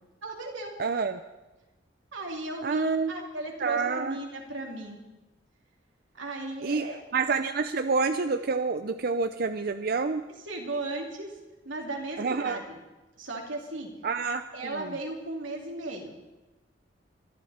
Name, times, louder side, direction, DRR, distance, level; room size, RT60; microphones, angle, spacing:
voice 1, 0.2-0.8 2.1-5.0 6.1-7.0 9.5-9.6 10.4-11.3 11.6-12.8 13.2-13.9 14.5-16.1, right 2 dB, 90° right, 0 dB, 3.0 m, -36 dB
voice 2, 0.8-1.2 2.6-3.1 3.6-4.2 6.6-6.8 7.1-10.2 12.2-12.6 14.0-14.9, right 4 dB, 55° right, 9 dB, 0.5 m, -28 dB
23.5 x 12.5 x 4.3 m, 1.1 s
head